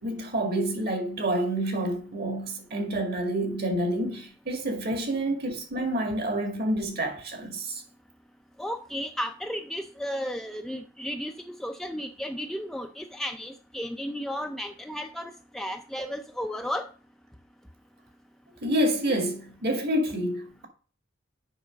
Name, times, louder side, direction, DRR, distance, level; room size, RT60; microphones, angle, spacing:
voice 1, 0.0-7.8 18.6-20.7, right 1 dB, 50° right, 1.9 m, -28 dB
voice 2, 8.6-16.8, equal, ahead, 0.5 m, -34 dB
7.1 x 5.5 x 5.1 m
head